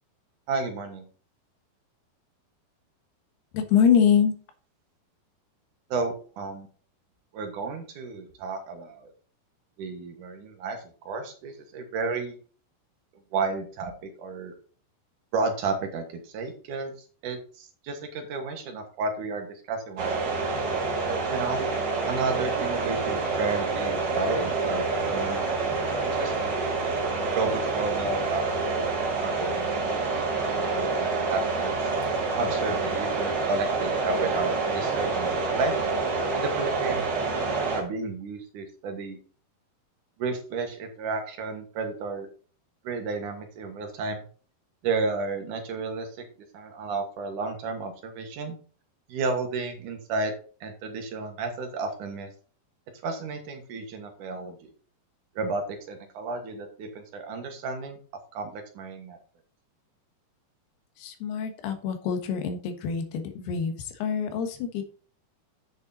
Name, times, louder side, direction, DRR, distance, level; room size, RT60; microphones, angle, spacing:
voice 1, 0.5-1.1 5.9-6.7 7.3-9.1 9.8-12.4 13.3-14.5 15.3-16.9 17.2-20.4 21.1-21.7 22.1-26.5 27.3-29.9 30.3-31.8 32.4-35.8 36.4-37.3 37.6-39.2 40.2-42.3 42.8-44.3 44.8-46.2 46.5-48.6 49.1-50.3 50.6-52.3 53.0-54.7 55.3-58.0 58.3-59.2, right 3 dB, 60° right, 4 dB, 2.6 m, -32 dB
voice 2, 3.5-4.3 61.0-64.8, left 7 dB, 85° left, 7 dB, 3.3 m, -25 dB
sound 1, 20.0-37.8, right 4 dB, 35° right, 2.1 m, -27 dB
8.8 x 6.5 x 4.0 m, 0.42 s
omnidirectional pair, 4.5 m